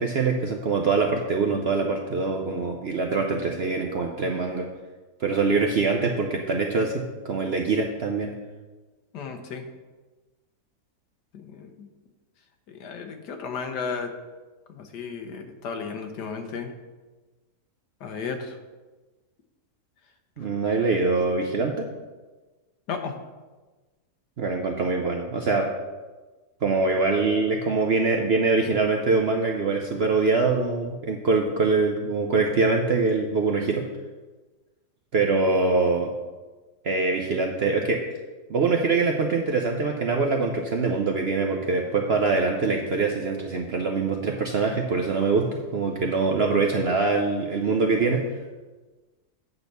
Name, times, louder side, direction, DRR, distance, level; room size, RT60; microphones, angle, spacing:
voice 1, 0.0-4.7 5.2-8.3 20.4-21.9 24.4-25.7 26.6-33.8 35.1-36.1 36.8-38.0 38.5-48.2, right 4 dB, 55° right, 2 dB, 0.7 m, -24 dB
voice 2, 9.1-9.6 11.3-11.9 12.7-14.1 14.7-16.7 18.0-18.6 20.4-20.7 22.9-23.1, left 5 dB, 85° left, 5 dB, 1.6 m, -34 dB
8.8 x 4.1 x 6.7 m, 1.2 s
omnidirectional pair, 1.7 m